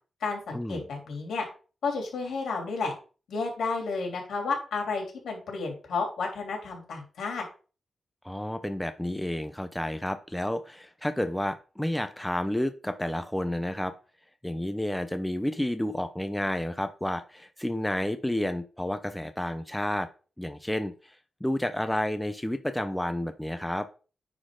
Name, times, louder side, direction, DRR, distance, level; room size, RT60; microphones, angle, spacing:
voice 1, 0.2-1.4 1.8-2.9 3.3-7.4, left 4 dB, 85° left, 1 dB, 3.0 m, -31 dB
voice 2, 8.2-13.9 14.4-20.1 20.4-21.2 21.4-23.9, left 1 dB, 5° left, 9 dB, 0.6 m, -30 dB
9.8 x 4.3 x 3.8 m, 0.36 s
wide cardioid pair, 135°, 0 cm